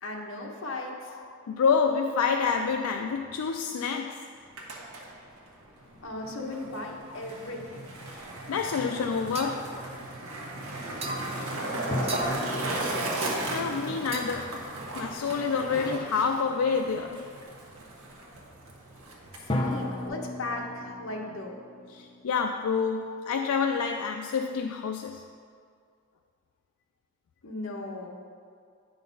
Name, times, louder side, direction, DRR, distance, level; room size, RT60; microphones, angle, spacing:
voice 1, 0.0-1.2 6.0-7.8 11.5-12.9 19.4-21.6 27.4-28.1, left 2 dB, 70° left, 0 dB, 1.1 m, -37 dB
voice 2, 1.1-4.3 7.1-7.2 8.1-9.9 13.5-14.7 14.9-17.3 21.9-25.3, left 5 dB, 90° left, 4 dB, 0.4 m, -28 dB
Skateboard, 4.4-20.1, right 1 dB, 80° right, 1.1 m, -36 dB
sound 1, 9.3-9.6 11.0-11.3 12.1-12.4 14.1-14.5, right 2 dB, 30° right, 0.6 m, -35 dB
sound 2, 11.9-15.3 19.5-22.8, left 1 dB, 20° left, 0.6 m, -36 dB
9.2 x 3.9 x 5.3 m, 2.2 s
head